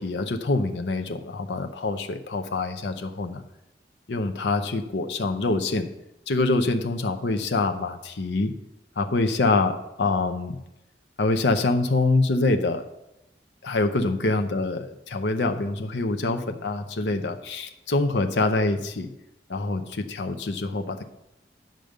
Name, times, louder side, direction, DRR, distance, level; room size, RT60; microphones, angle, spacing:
voice 1, 0.0-3.4 4.1-5.9 6.3-8.5 9.0-10.6 11.2-12.8 13.6-14.8 15.1-19.1 19.5-21.0, left 2 dB, 80° left, 6 dB, 0.7 m, -25 dB
9.2 x 5.2 x 6.5 m, 0.89 s
head